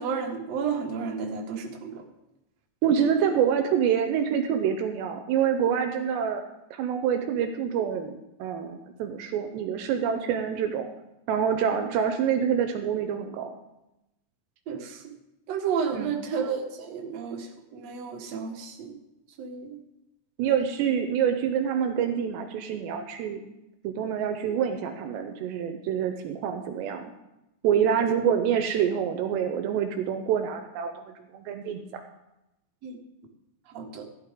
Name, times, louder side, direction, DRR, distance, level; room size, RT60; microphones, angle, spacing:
voice 1, 0.0-2.0 14.7-15.1 15.5-18.9 19.4-19.8 32.8-33.0 33.7-34.1, right 6 dB, 50° right, 1 dB, 2.1 m, -32 dB
voice 2, 2.8-6.4 6.7-10.9 11.3-13.5 15.9-16.1 20.4-23.4 23.8-27.1 27.6-32.0, right 8 dB, 80° right, 7 dB, 2.8 m, -26 dB
15.5 x 12.0 x 3.7 m, 0.92 s
omnidirectional pair, 5.2 m